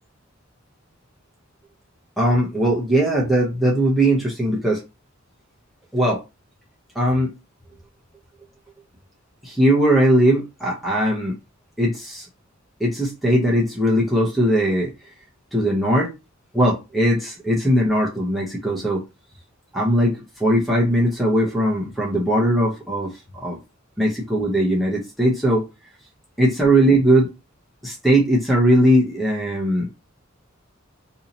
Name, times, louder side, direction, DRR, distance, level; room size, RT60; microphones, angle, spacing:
voice 1, 2.2-4.8 5.9-6.2 6.9-7.3 9.4-11.3 11.8-12.3 12.8-15.1 15.5-16.1 16.5-19.0 19.7-23.6 24.0-25.6 26.4-27.3 27.8-29.9, right 1 dB, ahead, -4 dB, 0.7 m, -19 dB
2.7 x 2.7 x 3.9 m, 0.26 s
head